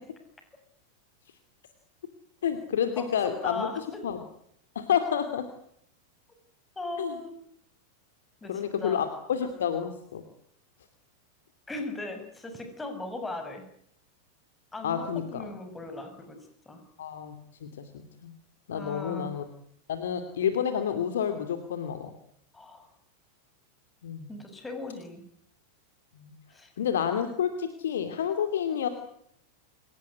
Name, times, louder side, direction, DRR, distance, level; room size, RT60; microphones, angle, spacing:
voice 1, 2.4-3.7 4.0-4.2 4.7-5.4 7.0-7.2 8.5-10.2 14.8-15.4 17.0-17.3 17.6-18.3 18.7-19.4 19.9-22.1 24.0-24.3 26.2-26.3 26.8-28.9, left 8 dB, 60° left, 8 dB, 2.7 m, -29 dB
voice 2, 3.0-4.0 6.8-7.3 8.4-9.0 11.7-13.6 14.7-16.4 16.6-16.8 18.7-19.3 22.5-22.9 24.3-25.2 26.5-26.7, left 2 dB, 10° left, 6 dB, 6.4 m, -38 dB
28.5 x 18.0 x 9.6 m, 0.71 s
figure-of-eight pair, 90°, 0 cm